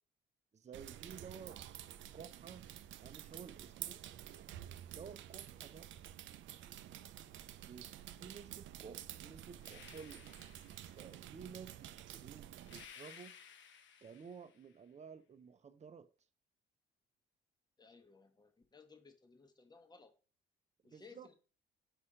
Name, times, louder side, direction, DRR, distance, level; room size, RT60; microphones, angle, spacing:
voice 1, 0.5-1.6 2.1-2.7 3.0-4.0 4.9-5.9 7.6-7.9 8.2-10.3 10.9-13.4 14.0-16.1 20.8-21.3, right 6 dB, 35° right, 0.7 m, -53 dB
sound 1, 0.7-12.9, right 12 dB, 75° right, 0.5 m, -50 dB
sound 2, 9.6-11.3 12.6-14.7, left 7 dB, 70° left, 0.9 m, -57 dB
voice 2, 17.8-20.1 20.8-21.3, left 4 dB, 20° left, 1.0 m, -60 dB
5.5 x 4.3 x 4.9 m
cardioid pair, 90°, 20 cm